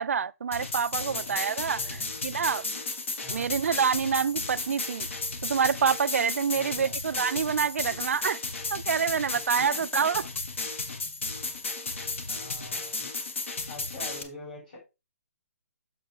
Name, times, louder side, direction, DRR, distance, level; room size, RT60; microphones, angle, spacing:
voice 1, 0.0-2.6 3.3-5.1 5.4-8.4 8.7-10.2, right 6 dB, 65° right, 0.3 m, -27 dB
sound 1, 0.5-14.2, left 3 dB, 55° left, 1.3 m, -34 dB
voice 2, 1.1-1.4 1.8-2.1 3.2-3.5 6.5-7.0 9.6-10.2 11.7-13.3 13.7-14.8, left 2 dB, 30° left, 4.4 m, -46 dB
6.7 x 6.7 x 3.5 m
hypercardioid pair, 180°, 8 cm